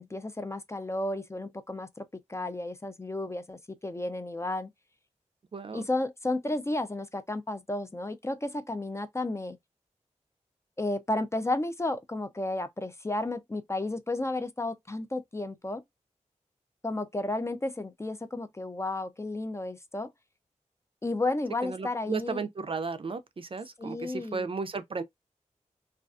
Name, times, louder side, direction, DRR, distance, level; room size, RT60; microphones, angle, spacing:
voice 1, 0.0-4.7 5.7-9.6 10.8-15.8 16.8-20.1 21.0-22.5 23.8-24.5, left 2 dB, 20° left, 0.4 m, -32 dB
voice 2, 5.5-5.9 21.6-25.0, right 4 dB, 45° right, 0.4 m, -34 dB
2.4 x 2.3 x 2.3 m
cardioid pair, 45°, 13 cm